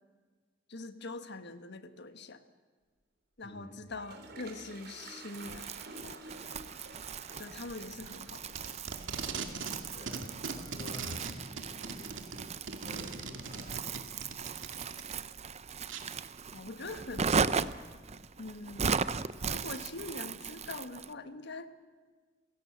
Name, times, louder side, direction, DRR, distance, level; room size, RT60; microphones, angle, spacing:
voice 1, 0.7-2.4 3.4-6.2 7.4-9.0 16.5-17.3 18.4-19.0 19.4-21.7, left 3 dB, 60° left, 10 dB, 1.5 m, -43 dB
voice 2, 3.4-3.8 9.9-12.2 12.8-13.7, left 1 dB, 30° left, 1 dB, 7.1 m, -50 dB
Toilet flush, 3.6-12.5, right 3 dB, 60° right, 3.5 m, -52 dB
Crumpling crinkling, 5.3-21.1, right 5 dB, 35° right, 0.7 m, -37 dB
Packing tape duct tape, 8.1-9.8 10.1-15.1 15.9-16.0, right 4 dB, 80° right, 2.3 m, -39 dB
30.0 x 17.0 x 8.0 m, 1.5 s
head